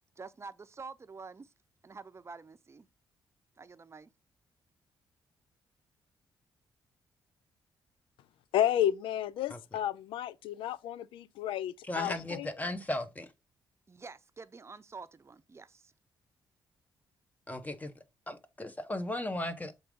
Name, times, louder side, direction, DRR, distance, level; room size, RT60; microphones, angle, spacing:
voice 1, 0.2-1.5 1.8-2.9 3.6-4.1 13.9-15.9, right 4 dB, 30° right, 0.7 m, -48 dB
voice 2, 8.5-12.5, left 11 dB, 85° left, 0.4 m, -31 dB
voice 3, 11.9-13.3 17.5-17.9 18.3-19.7, left 1 dB, 20° left, 1.2 m, -36 dB
6.7 x 4.0 x 3.7 m
supercardioid pair, 60°, 9 cm